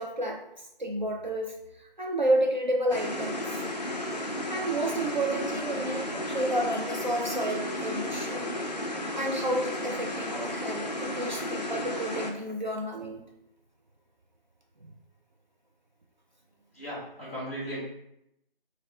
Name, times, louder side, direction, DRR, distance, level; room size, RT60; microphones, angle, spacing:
voice 1, 0.0-3.5 4.5-8.7 9.1-13.2 14.8-14.9, right 1 dB, 50° right, 0 dB, 0.4 m, -31 dB
sound 1, 2.9-12.3, left 1 dB, 45° left, 0.4 m, -33 dB
voice 2, 16.7-17.8, equal, 15° left, -8 dB, 0.8 m, -36 dB
3.3 x 2.4 x 3.4 m, 0.80 s
figure-of-eight pair, 160°, 29 cm